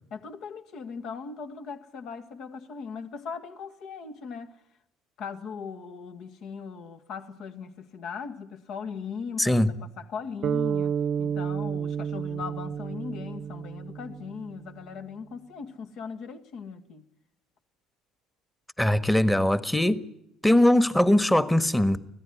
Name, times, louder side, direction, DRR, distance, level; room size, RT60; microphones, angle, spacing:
voice 1, 0.1-4.6 5.2-17.1, left 5 dB, 60° left, 2.0 m, -39 dB
voice 2, 9.4-9.7 18.8-20.0 20.4-22.0, left 1 dB, 5° left, 1.5 m, -21 dB
sound 1, 10.4-14.7, right 8 dB, 50° right, 0.8 m, -31 dB
25.0 x 17.0 x 9.6 m
hypercardioid pair, 60°, 0 cm